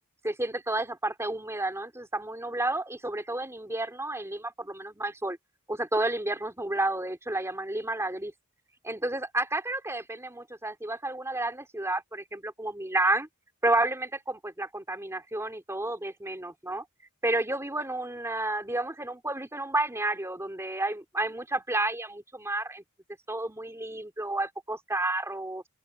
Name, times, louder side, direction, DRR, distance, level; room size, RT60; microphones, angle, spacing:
voice 1, 0.2-5.4 5.7-8.3 8.8-13.3 13.6-16.8 17.2-22.8 23.3-25.6, right 2 dB, 15° right, 3.4 m, -31 dB
open air
head